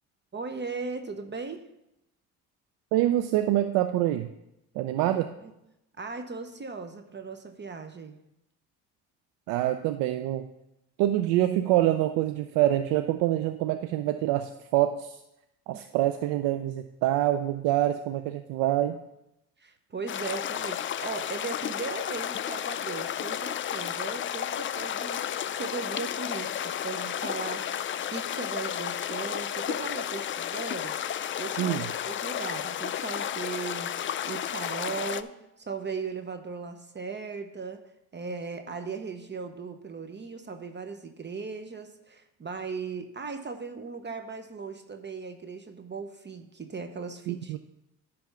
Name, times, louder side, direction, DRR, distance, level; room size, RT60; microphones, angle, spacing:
voice 1, 0.3-1.7 5.4-5.5 6.0-8.2 15.7-15.9 19.6-25.2 25.5-37.8 38.1-47.6, right 4 dB, 30° right, 7 dB, 0.8 m, -38 dB
voice 2, 2.9-4.3 4.7-5.3 9.5-10.5 11.0-15.2 15.7-19.0 31.6-31.9 47.3-47.6, right 13 dB, 85° right, 9 dB, 0.5 m, -26 dB
sound 1, 20.1-35.2, left 10 dB, 35° left, 0.4 m, -32 dB
10.5 x 3.5 x 6.8 m, 0.86 s
supercardioid pair, 65°, 35 cm